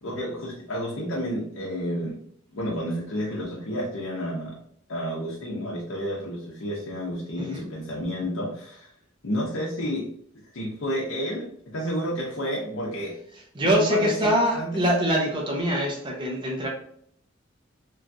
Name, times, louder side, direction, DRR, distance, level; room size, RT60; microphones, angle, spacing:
voice 1, 0.0-2.2 2.5-4.6 4.9-8.9 9.2-10.1 10.5-13.2 13.6-14.8, equal, 85° left, -4 dB, 0.7 m, -30 dB
voice 2, 13.5-16.7, equal, 25° right, -1 dB, 0.5 m, -24 dB
3.0 x 2.3 x 2.5 m, 0.65 s
head